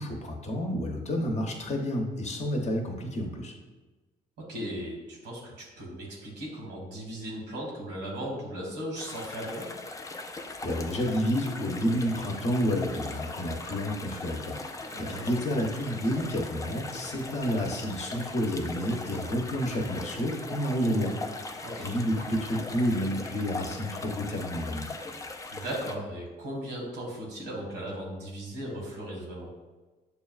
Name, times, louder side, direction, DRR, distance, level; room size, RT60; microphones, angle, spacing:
voice 1, 0.0-3.5 10.6-21.2 21.8-24.9, equal, 40° left, 2 dB, 0.8 m, -30 dB
voice 2, 4.5-9.7 14.9-15.2 21.6-21.9 25.5-29.5, equal, 85° right, -2 dB, 1.4 m, -37 dB
sound 1, 8.9-25.9, left 3 dB, 20° left, 0.4 m, -40 dB
6.7 x 2.3 x 2.3 m, 1.2 s
cardioid pair, 75°, 17 cm